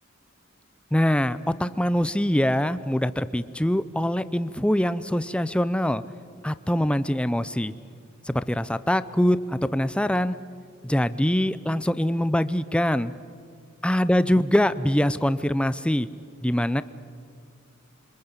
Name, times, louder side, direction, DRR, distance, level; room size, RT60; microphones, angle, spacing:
voice 1, 0.9-6.0 6.4-7.7 8.3-10.3 10.8-13.1 13.8-16.1 16.4-16.8, equal, 5° left, 14 dB, 0.6 m, -23 dB
27.0 x 25.0 x 8.1 m, 2.3 s
head